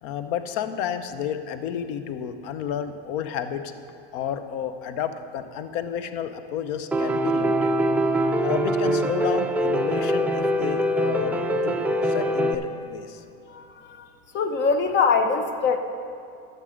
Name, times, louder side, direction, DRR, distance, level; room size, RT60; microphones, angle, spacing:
voice 1, 0.0-3.7 4.1-7.7 8.4-11.4 11.6-13.2, left 8 dB, 65° left, 10 dB, 0.8 m, -31 dB
Piano, 6.9-12.5, right 1 dB, 5° right, 0.5 m, -23 dB
voice 2, 13.5-14.0 14.3-15.8, left 5 dB, 40° left, 7 dB, 0.9 m, -23 dB
12.5 x 6.6 x 5.1 m, 2.5 s
supercardioid pair, 115°, 30 cm